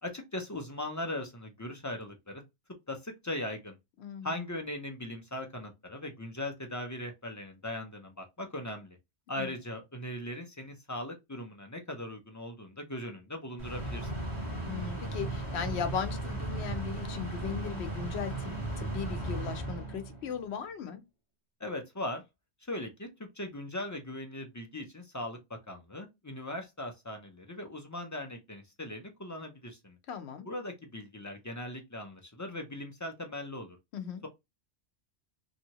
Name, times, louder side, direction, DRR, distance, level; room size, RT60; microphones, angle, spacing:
voice 1, 0.0-2.4 2.9-3.8 4.2-9.0 9.3-14.1 21.6-22.2 22.6-23.1 23.3-25.4 25.7-30.0 30.4-33.8, left 1 dB, 25° left, 0.4 m, -39 dB
voice 2, 4.0-4.4 9.4-9.5 14.6-21.0 30.1-30.5 33.9-34.2, left 7 dB, 80° left, 0.9 m, -37 dB
sound 1, 13.6-20.4, right 2 dB, 20° right, 1.5 m, -36 dB
3.0 x 2.7 x 2.8 m
omnidirectional pair, 1.1 m